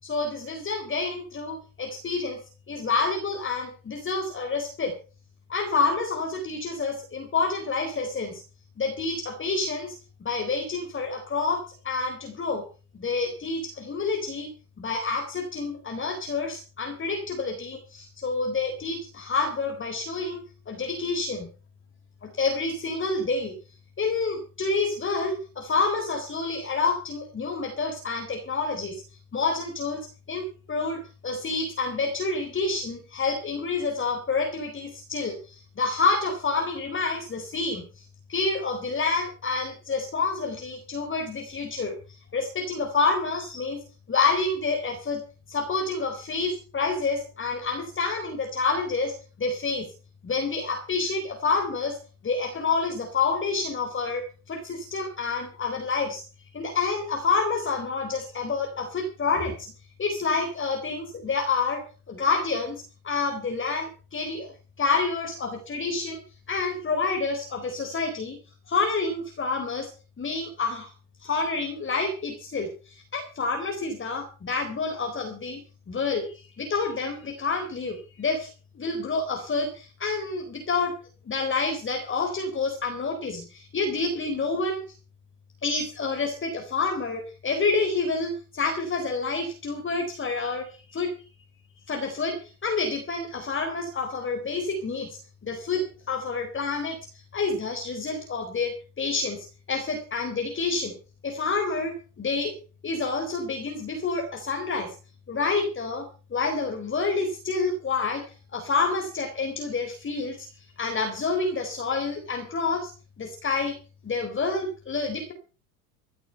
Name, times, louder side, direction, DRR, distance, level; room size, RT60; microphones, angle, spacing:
voice 1, 0.0-2.4 2.7-4.9 5.5-8.4 8.8-9.9 10.2-12.6 12.9-14.5 14.8-20.4 20.7-21.5 22.2-23.6 24.0-29.0 29.3-38.0 38.3-42.0 42.3-43.8 44.1-45.2 45.5-49.1 49.4-49.9 50.2-52.0 52.2-56.2 56.5-59.7 60.0-61.8 62.1-64.5 64.8-66.2 66.5-68.4 68.7-69.9 70.2-70.9 71.2-75.6 75.9-78.5 78.7-80.9 81.3-84.8 85.6-91.1 91.9-97.0 97.3-101.0 101.2-102.5 102.8-104.9 105.3-108.2 108.5-110.5 110.8-112.9 113.2-113.7 114.0-115.3, left 4 dB, 25° left, 4 dB, 4.0 m, -28 dB
15.0 x 12.0 x 5.5 m, 0.35 s
hypercardioid pair, 80°, 44 cm